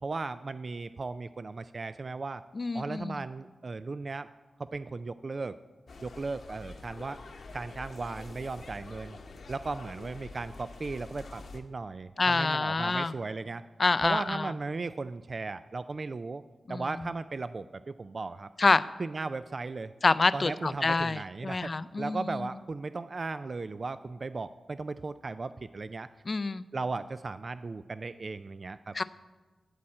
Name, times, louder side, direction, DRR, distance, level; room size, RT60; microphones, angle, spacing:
voice 1, 0.0-2.4 2.7-4.3 4.6-5.6 6.0-7.2 7.5-9.2 9.5-13.6 14.0-16.4 16.7-18.5 19.0-19.9 20.3-26.1 26.7-29.0, right 3 dB, 50° right, 13 dB, 0.3 m, -36 dB
voice 2, 2.6-3.2 12.2-13.1 13.8-14.5 16.7-16.8 18.6-18.8 20.0-22.4 26.3-26.6 28.9-29.0, left 3 dB, 50° left, 15 dB, 0.4 m, -27 dB
sound 1, 5.9-11.6, left 3 dB, 75° left, 1.0 m, -46 dB
13.0 x 4.3 x 7.6 m, 1.3 s
cardioid pair, 50°, 0 cm